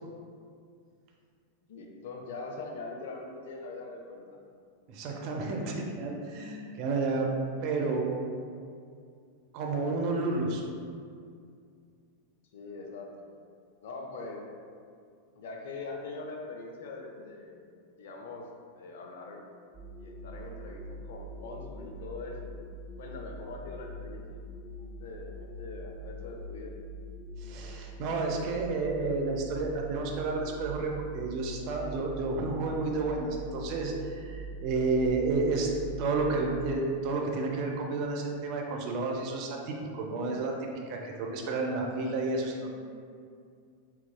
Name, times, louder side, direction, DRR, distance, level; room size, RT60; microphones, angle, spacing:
voice 1, 1.7-4.4 12.5-13.3 13.8-14.5 15.3-17.7 18.0-18.5 18.7-19.4 20.0-22.5 23.0-24.4 24.7-26.7, left 3 dB, 55° left, 2 dB, 0.5 m, -42 dB
voice 2, 4.9-7.3 7.6-8.1 9.5-10.6 27.4-35.7 36.0-40.5 40.9-42.7, right 3 dB, 45° right, 0 dB, 0.6 m, -31 dB
sound 1, 19.7-36.8, equal, 10° left, 0.5 m, -43 dB
4.6 x 4.0 x 2.2 m, 2.2 s
figure-of-eight pair, 90°, 0 cm